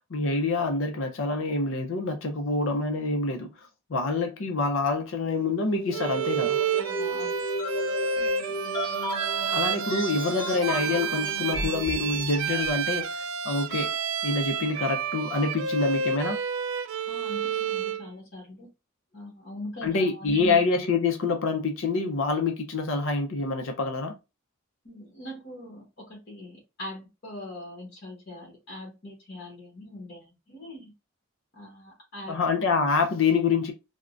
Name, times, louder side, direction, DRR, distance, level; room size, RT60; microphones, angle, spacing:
voice 1, 0.1-3.5 3.9-6.6 9.5-14.0 14.2-16.4 19.8-24.1 32.3-33.7, left 3 dB, 65° left, 0.6 m, -26 dB
sound 1, 5.7-12.9, right 1 dB, 20° left, 0.8 m, -34 dB
Bowed string instrument, 5.9-18.1, right 6 dB, 70° right, 0.3 m, -30 dB
voice 2, 6.8-7.4 17.1-18.7 19.1-20.6 24.8-30.9 31.5-32.4, left 1 dB, 50° left, 1.2 m, -41 dB
3.5 x 2.1 x 2.4 m
head